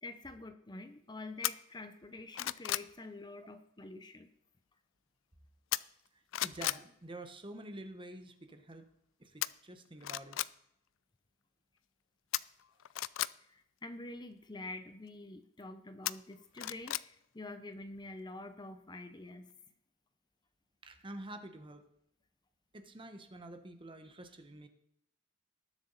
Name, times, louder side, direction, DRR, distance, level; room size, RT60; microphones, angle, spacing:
voice 1, 0.0-4.3 13.5-19.5, left 2 dB, 20° left, 9 dB, 0.7 m, -47 dB
sound 1, 1.4-1.5 2.0-2.9 5.7-6.1 6.3-6.8 9.4-9.5 10.0-10.5 12.3-13.3 16.1-17.1 17.4-17.5, left 15 dB, 80° left, 0.4 m, -35 dB
voice 2, 6.1-8.9 9.2-10.4 20.8-21.9 22.7-24.7, right 1 dB, 25° right, 7 dB, 1.1 m, -48 dB
19.5 x 7.0 x 4.1 m, 0.75 s
head